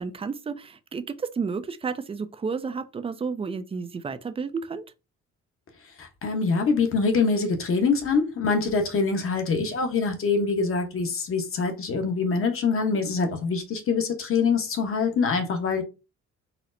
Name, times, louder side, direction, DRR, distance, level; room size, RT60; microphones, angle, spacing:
voice 1, 0.0-4.8, right 5 dB, 20° right, 0.3 m, -31 dB
voice 2, 6.0-15.8, left 4 dB, 45° left, 0.9 m, -24 dB
4.2 x 2.0 x 2.5 m
cardioid pair, 90°, 30 cm